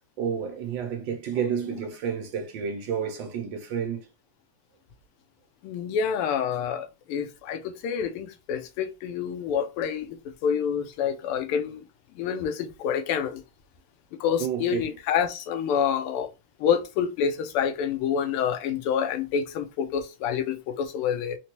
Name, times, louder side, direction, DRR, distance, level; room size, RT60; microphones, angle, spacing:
voice 1, 0.2-4.1 14.4-14.9, right 7 dB, 75° right, 1.1 m, -30 dB
voice 2, 5.6-11.8 12.2-13.4 14.2-16.3 16.6-21.4, left 8 dB, 90° left, 1.5 m, -27 dB
4.1 x 2.2 x 2.8 m
omnidirectional pair, 2.4 m